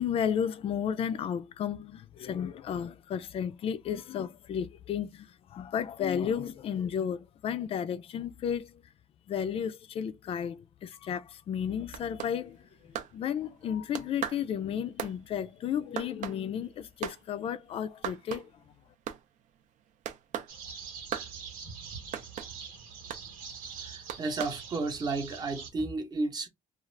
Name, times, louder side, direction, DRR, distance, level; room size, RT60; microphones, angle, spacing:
voice 1, 0.0-8.8 9.3-18.5, left 8 dB, 40° left, 0.4 m, -33 dB
sound 1, 11.6-13.7 13.9-17.2 17.5-17.6 17.9-18.6 18.9-19.5 20.0-20.5 21.1-21.3 22.1-22.5 23.1-23.2 24.1-24.6, right 9 dB, 60° right, 0.5 m, -38 dB
sound 2, 20.5-25.7, right 6 dB, 75° right, 1.0 m, -44 dB
voice 2, 23.8-26.5, right 3 dB, 30° right, 0.8 m, -32 dB
2.5 x 2.4 x 3.2 m
cardioid pair, 130°, 15 cm